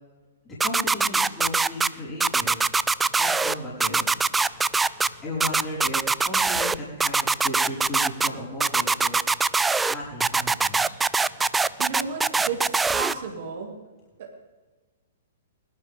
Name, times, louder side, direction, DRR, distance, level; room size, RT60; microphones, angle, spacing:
voice 1, 0.4-2.6 3.2-4.1 5.2-9.2 9.9-10.9, left 1 dB, 15° left, -7 dB, 5.1 m, -35 dB
sound 1, 0.6-1.9 2.2-3.5 3.8-5.1 5.4-6.8 7.0-8.3 8.6-9.9 10.2-13.1, right 4 dB, 10° right, 0.3 m, -22 dB
sound 2, 2.2-13.4, left 3 dB, 40° left, 5.0 m, -51 dB
voice 2, 11.8-13.7 14.2-14.5, right 5 dB, 50° right, 1 dB, 2.9 m, -33 dB
21.0 x 11.5 x 3.7 m, 1.3 s
figure-of-eight pair, 110°, 0 cm